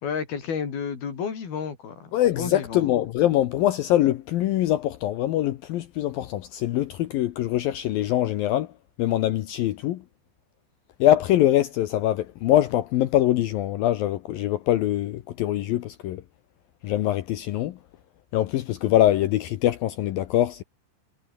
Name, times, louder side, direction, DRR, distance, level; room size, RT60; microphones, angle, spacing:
voice 1, 0.0-2.9, left 6 dB, 55° left, 5.8 m, -31 dB
voice 2, 2.1-8.7 9.0-10.0 11.0-16.2 16.8-17.8 18.3-20.6, left 13 dB, 85° left, 2.1 m, -23 dB
omnidirectional pair, 5.5 m